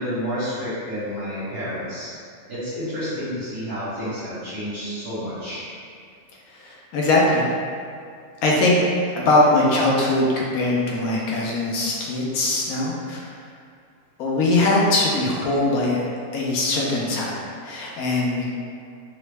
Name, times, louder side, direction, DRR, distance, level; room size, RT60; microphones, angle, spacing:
voice 1, 0.0-2.1 2.5-5.7, equal, 85° right, -12 dB, 1.6 m, -30 dB
voice 2, 6.6-7.5 8.4-8.8 9.2-13.3 14.2-16.1 16.3-18.5, left 2 dB, 80° left, -3 dB, 1.1 m, -21 dB
3.7 x 2.0 x 3.2 m, 2.3 s
omnidirectional pair, 1.6 m